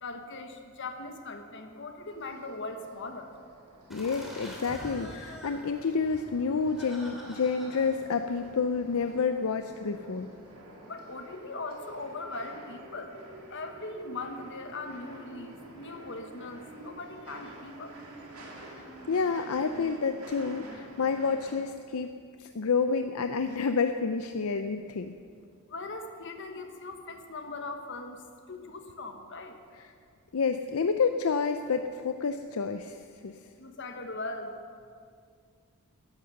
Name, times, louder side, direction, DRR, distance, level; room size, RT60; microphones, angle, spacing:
voice 1, 0.0-3.3 10.9-13.1 13.5-17.9 25.7-28.2 28.5-29.6 33.6-34.5, left 3 dB, 55° left, 5 dB, 1.3 m, -40 dB
sound 1, 2.1-21.6, right 1 dB, 85° right, 2.3 m, -49 dB
voice 2, 3.9-10.3 18.6-22.1 22.4-25.2 29.8-29.9 30.3-33.0 33.2-33.4, left 5 dB, 75° left, 8 dB, 0.5 m, -29 dB
sound 2, 3.9-9.1, equal, ahead, 2.7 m, -46 dB
14.0 x 11.0 x 6.6 m, 2.2 s
head